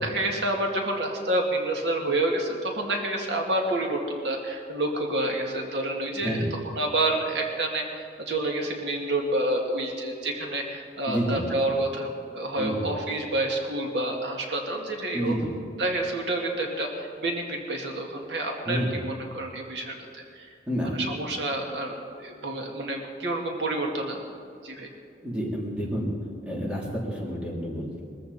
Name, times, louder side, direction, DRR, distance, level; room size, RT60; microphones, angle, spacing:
voice 1, 0.0-6.4 6.7-7.8 8.3-12.1 12.3-15.3 15.8-19.9 20.3-20.5 20.9-24.2 24.6-24.9, right 1 dB, 80° right, 1 dB, 2.2 m, -28 dB
voice 2, 11.1-11.4 12.6-12.8 15.1-15.5 18.7-19.0 20.7-21.0 25.2-26.1 26.4-28.0, equal, 5° right, -5 dB, 3.3 m, -29 dB
22.0 x 14.5 x 4.3 m, 2.4 s
head